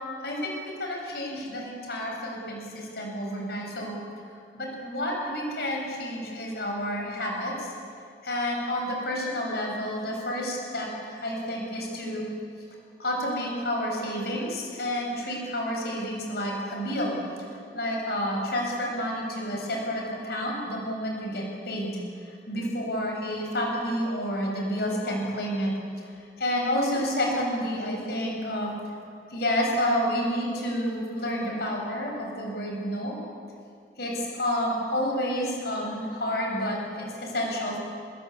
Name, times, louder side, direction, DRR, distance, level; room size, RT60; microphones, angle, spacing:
voice 1, 0.2-0.5 0.8-4.0 4.5-7.7 8.2-12.2 13.0-17.1 17.5-25.7 26.0-28.7 29.3-33.1 34.0-37.8, equal, 65° left, 0 dB, 7.9 m, -30 dB
27.0 x 22.5 x 8.6 m, 2.2 s
head